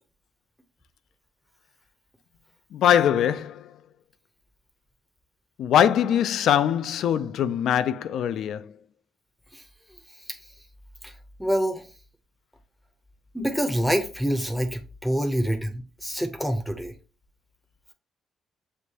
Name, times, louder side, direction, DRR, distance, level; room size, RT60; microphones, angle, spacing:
voice 1, 2.7-3.7 5.6-8.7, left 9 dB, 75° left, 0.3 m, -22 dB
voice 2, 11.4-11.8 13.3-16.9, equal, 5° left, 0.6 m, -26 dB
6.3 x 2.6 x 2.8 m
cardioid pair, 90°, 0 cm